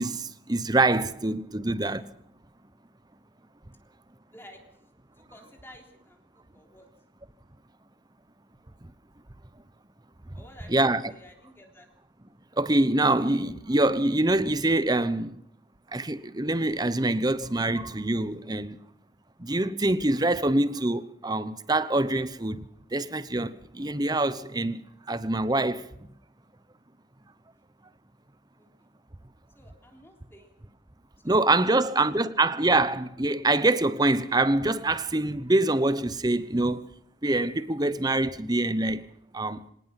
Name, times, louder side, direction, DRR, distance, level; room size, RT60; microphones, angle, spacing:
voice 1, 0.0-2.1 10.7-11.1 12.6-15.4 15.9-18.8 19.4-24.8 25.1-25.9 31.2-36.9 37.2-39.1 39.3-39.6, right 2 dB, 20° right, 0.9 m, -25 dB
voice 2, 5.2-6.2 6.5-6.9 10.3-11.9 28.6-28.7 29.6-30.6 31.2-32.3, left 1 dB, 10° left, 3.5 m, -52 dB
25.0 x 18.5 x 5.9 m
head